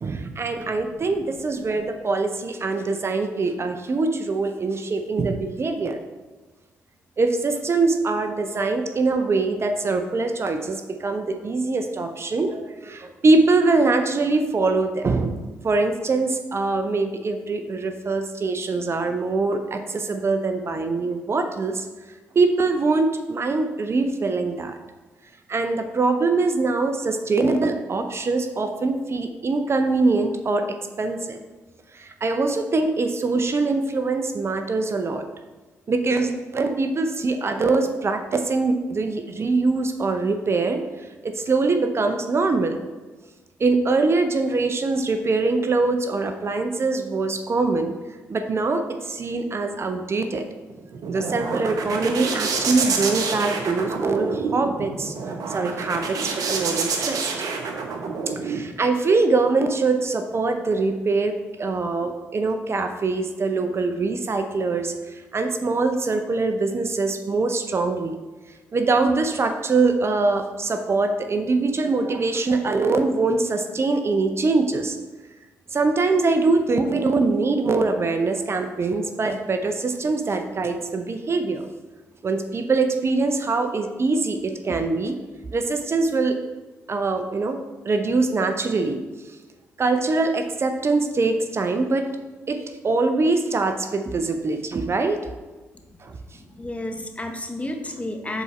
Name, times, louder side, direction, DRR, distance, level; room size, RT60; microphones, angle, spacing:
voice 1, 0.0-6.0 7.2-21.9 22.3-24.8 25.5-31.4 31.9-35.3 35.9-42.8 43.6-47.9 48.3-50.5 51.1-55.1 55.5-57.3 58.4-68.1 68.7-75.0 75.7-81.7 82.2-85.2 85.5-86.4 86.9-87.6 87.8-89.0 89.3-89.4 89.8-92.1 92.5-95.2 96.0-96.2, right 3 dB, 40° right, 7 dB, 0.6 m, -23 dB
sound 1, 50.7-58.6, right 4 dB, 65° right, 0.9 m, -28 dB
voice 2, 96.3-98.4, left 1 dB, 20° left, 4 dB, 1.1 m, -32 dB
7.0 x 4.1 x 4.3 m, 1.2 s
hypercardioid pair, 45°, 7 cm